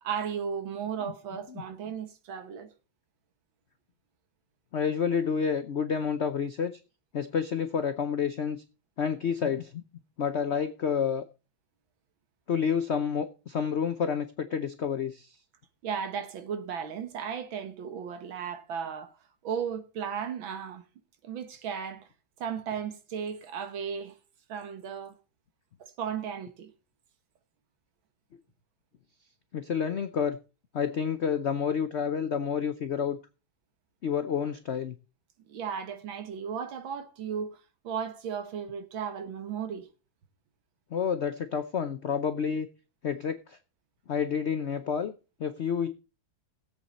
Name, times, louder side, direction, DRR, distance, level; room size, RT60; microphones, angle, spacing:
voice 1, 0.0-2.7 15.8-19.2 19.4-20.8 21.2-22.1 22.4-24.2 24.5-25.2 25.8-26.7 35.5-39.9, right 7 dB, 85° right, 2.1 m, -35 dB
voice 2, 4.7-6.7 7.1-8.6 9.0-9.8 10.2-11.2 12.5-15.3 29.5-30.4 30.7-33.2 34.0-34.9 40.9-42.7 43.0-43.6 44.1-45.1 45.4-45.9, left 7 dB, 75° left, 0.6 m, -29 dB
16.5 x 8.1 x 4.1 m
omnidirectional pair, 2.1 m